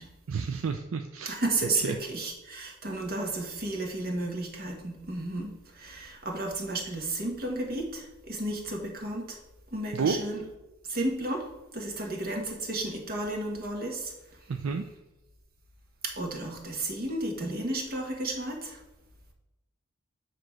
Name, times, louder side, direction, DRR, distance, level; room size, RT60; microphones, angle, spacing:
voice 1, 0.3-1.4 1.8-1.9 9.9-10.2 14.5-14.8, right 5 dB, 70° right, 6 dB, 0.4 m, -30 dB
voice 2, 1.2-9.4 9.7-10.4 10.8-11.5 11.7-14.1 14.4-14.7 16.1-18.8, right 2 dB, 45° right, 1 dB, 1.4 m, -33 dB
7.6 x 3.1 x 5.9 m, 0.98 s
head